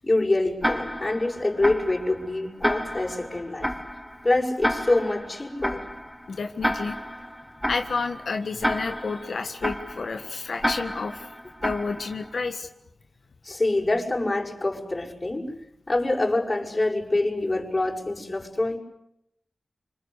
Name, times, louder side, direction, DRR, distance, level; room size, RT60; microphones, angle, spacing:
voice 1, 0.0-3.7 4.2-5.9 13.4-15.5 15.9-18.8, left 2 dB, 35° left, -2 dB, 6.9 m, -25 dB
Tick-tock, 0.6-12.5, equal, ahead, 3.7 m, -31 dB
voice 2, 6.3-7.0 7.6-11.3 11.6-12.7, left 4 dB, 80° left, 6 dB, 1.6 m, -30 dB
27.5 x 25.5 x 8.3 m, 0.78 s
wide cardioid pair, 75°, 0 cm